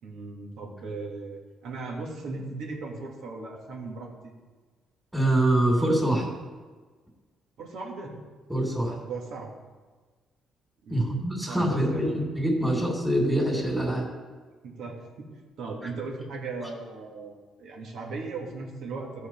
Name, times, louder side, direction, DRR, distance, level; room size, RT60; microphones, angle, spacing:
voice 1, 0.0-4.3 7.6-8.1 8.8-9.5 10.8-12.3 12.7-12.8 14.6-15.3 15.6-19.3, right 3 dB, 70° right, 0 dB, 2.1 m, -38 dB
voice 2, 5.1-6.3 8.5-8.9 10.9-14.1, right 1 dB, 5° right, -3 dB, 2.8 m, -24 dB
14.0 x 4.8 x 4.5 m, 1.4 s
supercardioid pair, 75°, 0 cm